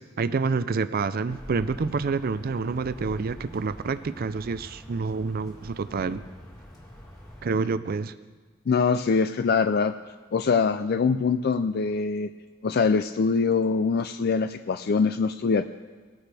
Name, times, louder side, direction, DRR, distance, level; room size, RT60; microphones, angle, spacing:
voice 1, 0.0-6.2 7.4-8.1, right 4 dB, 50° right, 13 dB, 0.4 m, -28 dB
sound 1, 1.3-7.5, equal, 20° left, 2.1 m, -45 dB
voice 2, 8.7-9.9 10.3-12.3 12.6-15.6, left 5 dB, 50° left, 9 dB, 0.4 m, -23 dB
20.0 x 9.9 x 3.4 m, 1.4 s
head